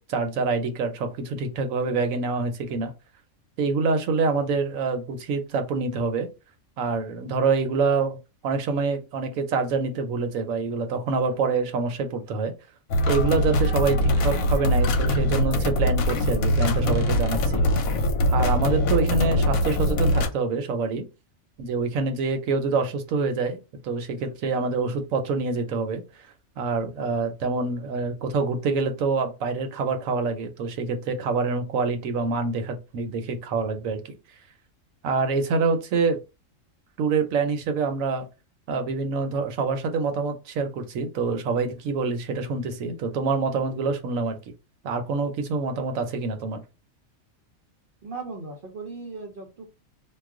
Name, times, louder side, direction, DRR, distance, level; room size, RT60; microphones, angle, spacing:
voice 1, 0.0-2.9 3.6-6.3 6.8-8.2 8.4-12.5 13.1-17.9 18.3-21.0 21.6-23.6 23.8-26.0 26.6-34.2 35.0-36.2 37.0-38.3 38.7-44.4 44.8-46.6, right 4 dB, 75° right, 1.0 m, -26 dB
sound 1, 12.9-20.3, left 1 dB, 85° left, 1.1 m, -22 dB
voice 2, 48.0-49.6, right 3 dB, 55° right, 0.6 m, -37 dB
2.3 x 2.3 x 3.6 m
omnidirectional pair, 1.4 m